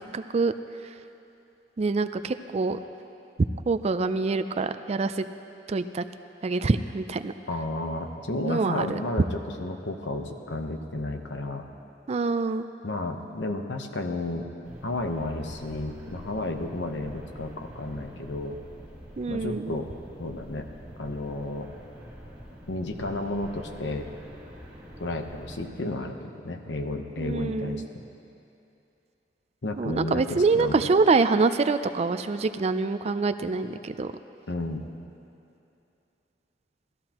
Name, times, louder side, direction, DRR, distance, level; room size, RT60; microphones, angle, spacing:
voice 1, 0.1-0.5 1.8-2.8 3.7-5.3 5.7-6.0 6.4-7.3 8.4-9.0 12.1-12.7 19.2-19.8 27.2-27.9 29.8-34.1, right 4 dB, 35° right, 10 dB, 0.4 m, -25 dB
voice 2, 7.5-9.3 9.6-11.6 12.8-14.5 14.8-18.6 19.3-19.9 20.2-20.7 21.0-21.7 22.7-24.1 25.0-27.8 29.6-30.9 34.5-34.8, left 2 dB, 80° left, 5 dB, 0.9 m, -32 dB
sound 1, 14.6-25.7, equal, 10° right, 2.5 m, -45 dB
18.5 x 13.5 x 2.9 m, 2.7 s
head